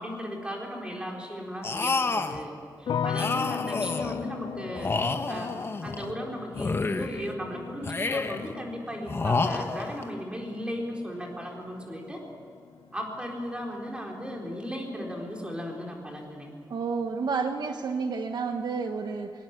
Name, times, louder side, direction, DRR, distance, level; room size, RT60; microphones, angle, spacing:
voice 1, 0.0-12.2 12.9-16.5, equal, 15° right, 0 dB, 4.1 m, -36 dB
sound 1, 1.6-2.4 3.1-4.2 4.8-6.1 6.5-7.3 7.8-8.5 9.1-10.1, left 3 dB, 30° left, 1.0 m, -29 dB
sound 2, 2.9-13.9 14.2-14.9, left 8 dB, 85° left, 0.6 m, -39 dB
voice 2, 16.7-19.4, right 5 dB, 70° right, 6 dB, 1.1 m, -30 dB
21.5 x 18.5 x 8.2 m, 2.5 s
wide cardioid pair, 170°, 7 cm